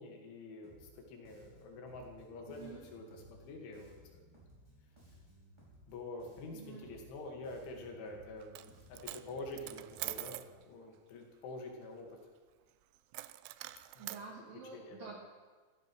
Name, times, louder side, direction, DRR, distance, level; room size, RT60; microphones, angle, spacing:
voice 1, 0.0-4.4 5.9-10.4 10.7-12.2 13.9-14.3 14.7-15.1, left 2 dB, 70° left, 2 dB, 4.4 m, -47 dB
Bass guitar, 0.6-5.9 6.2-10.5, right 1 dB, 5° right, 4.5 m, -60 dB
voice 2, 2.5-2.9 6.5-7.0 14.0-15.2, right 5 dB, 65° right, -1 dB, 2.4 m, -49 dB
Coin (dropping), 8.4-8.7 9.0-10.5 13.1-14.2, right 18 dB, 85° right, 2.6 m, -44 dB
15.0 x 13.5 x 6.2 m, 1.4 s
omnidirectional pair, 5.9 m